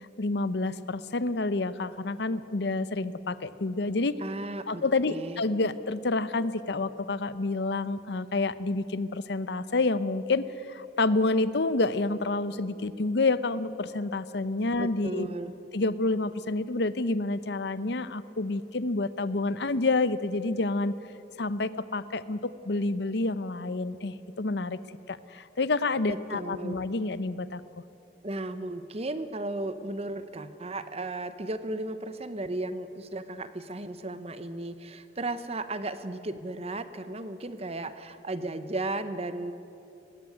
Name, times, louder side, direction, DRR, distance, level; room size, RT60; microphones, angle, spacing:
voice 1, 0.2-4.2 4.7-15.3 15.7-20.9 21.4-24.8 25.1-27.6, left 3 dB, 65° left, 15 dB, 0.8 m, -28 dB
voice 2, 4.2-4.8 5.1-5.4 14.8-15.6 26.1-26.8 28.2-39.5, right 2 dB, 35° right, 12 dB, 1.0 m, -35 dB
20.0 x 15.5 x 9.7 m, 2.8 s
head